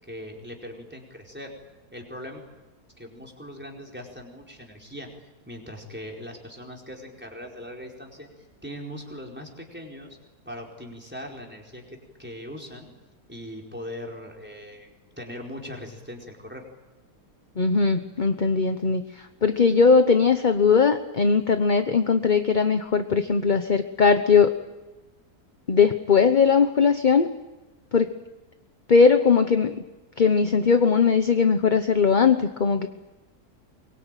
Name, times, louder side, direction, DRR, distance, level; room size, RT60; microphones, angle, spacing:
voice 1, 0.0-1.5 1.9-2.4 3.0-8.3 8.6-10.2 10.4-12.9 13.3-16.6, equal, 5° right, -1 dB, 4.7 m, -40 dB
voice 2, 17.6-19.0 19.4-24.5 25.7-27.3 27.9-28.1 28.9-29.8 30.2-32.9, left 5 dB, 35° left, 8 dB, 1.0 m, -19 dB
24.0 x 23.0 x 9.2 m, 1.1 s
omnidirectional pair, 1.7 m